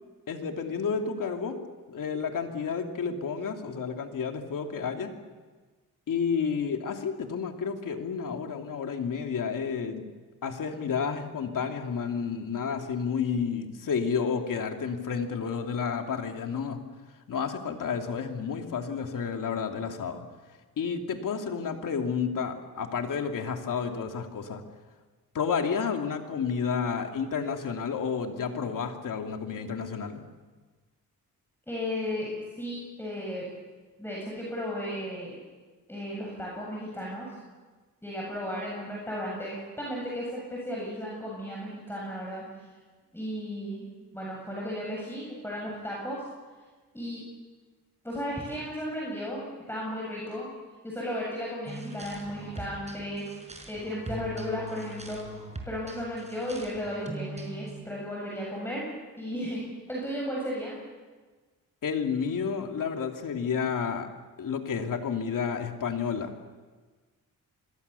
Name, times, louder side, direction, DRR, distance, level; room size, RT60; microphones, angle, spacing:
voice 1, 0.3-5.1 6.1-10.0 10.4-16.8 17.3-20.2 20.8-24.6 25.3-30.2 61.8-64.1 64.4-66.3, left 6 dB, 65° left, 4 dB, 2.8 m, -31 dB
voice 2, 31.7-32.3 32.6-33.5 34.0-35.4 35.9-37.4 38.0-42.5 43.1-43.9 44.1-46.2 46.9-47.2 48.0-50.5 50.8-53.2 53.7-55.2 55.7-58.9 59.2-60.8, equal, 5° left, -4 dB, 7.6 m, -34 dB
sound 1, 51.7-57.7, right 2 dB, 20° right, 5.4 m, -41 dB
25.5 x 22.0 x 7.0 m, 1.4 s
cardioid pair, 95°, 34 cm